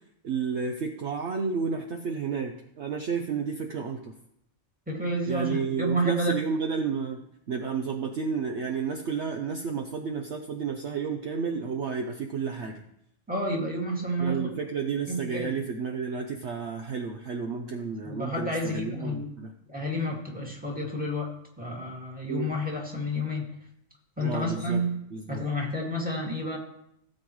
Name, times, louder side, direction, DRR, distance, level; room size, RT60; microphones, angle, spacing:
voice 1, 0.2-4.1 5.3-7.2 7.5-12.8 14.2-19.5 22.3-22.5 24.2-24.8 25.1-25.4, right 5 dB, 60° right, 3 dB, 1.0 m, -31 dB
voice 2, 4.9-6.3 13.3-14.5 15.1-15.5 18.0-19.3 19.7-21.3 21.6-23.5 24.2-25.0 25.3-26.6, equal, 5° right, -3 dB, 2.2 m, -30 dB
17.0 x 7.7 x 3.2 m, 0.76 s
omnidirectional pair, 1.4 m